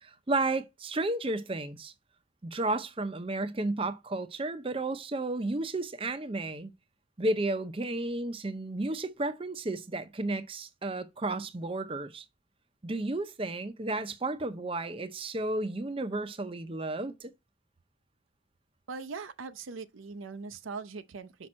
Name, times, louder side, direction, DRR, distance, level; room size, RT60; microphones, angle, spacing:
voice 1, 0.0-1.9 2.4-6.7 7.2-12.3 12.8-17.3, right 2 dB, 30° right, 0.6 m, -32 dB
voice 2, 18.9-21.5, right 4 dB, 85° right, 0.6 m, -41 dB
6.1 x 5.4 x 4.2 m
head